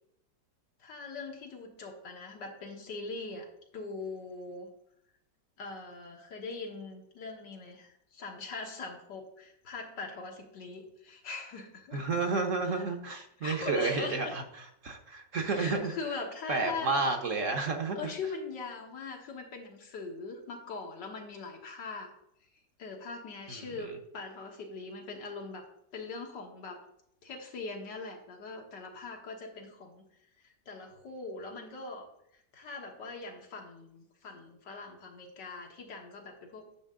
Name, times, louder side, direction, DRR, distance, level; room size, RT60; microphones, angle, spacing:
voice 1, 0.8-3.5 3.7-4.7 5.6-12.0 12.6-12.9 13.4-14.3 15.5-16.9 18.0-22.1 22.8-25.7 25.9-26.8 27.2-30.0 30.4-32.1 32.5-36.7, left 3 dB, 85° left, 1 dB, 2.0 m, -41 dB
voice 2, 11.9-15.9 16.5-18.1 23.5-23.6 23.9-24.0, right 3 dB, 55° right, 4 dB, 1.1 m, -31 dB
9.9 x 6.5 x 3.7 m, 0.76 s
omnidirectional pair, 1.9 m